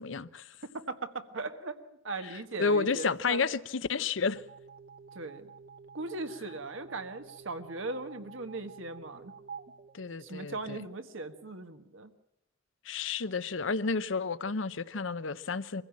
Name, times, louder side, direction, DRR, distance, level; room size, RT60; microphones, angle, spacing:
voice 1, 0.0-0.5 2.6-4.4 9.9-10.8 12.9-15.8, left 4 dB, 70° left, 0.7 m, -31 dB
voice 2, 0.6-3.4 5.1-5.5 5.9-9.3 10.2-12.1, right 3 dB, 75° right, 1.6 m, -39 dB
sound 1, 4.4-10.8, right 5 dB, 50° right, 0.8 m, -50 dB
23.0 x 15.5 x 8.6 m
head